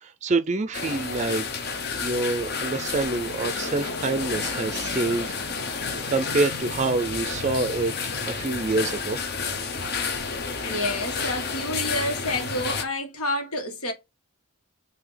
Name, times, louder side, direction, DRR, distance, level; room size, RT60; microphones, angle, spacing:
voice 1, 0.0-1.5 2.0-9.2, right 3 dB, 30° right, 0.4 m, -27 dB
sound 1, 0.7-12.8, left 5 dB, 45° left, 0.8 m, -30 dB
voice 2, 10.6-13.9, left 1 dB, 85° left, 1.5 m, -29 dB
5.8 x 2.8 x 3.3 m
head